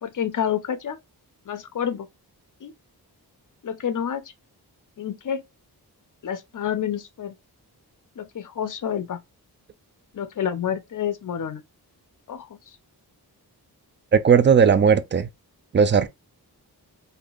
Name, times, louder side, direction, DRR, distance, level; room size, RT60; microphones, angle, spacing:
voice 1, 0.0-1.0 1.5-2.1 2.6-2.7 3.6-4.2 5.0-5.4 6.2-7.3 8.2-9.2 10.1-11.6 12.3-12.6, left 8 dB, 55° left, 0.6 m, -28 dB
voice 2, 14.1-15.3 15.7-16.1, right 6 dB, 30° right, 0.4 m, -17 dB
3.5 x 2.7 x 2.4 m
wide cardioid pair, 110°, 39 cm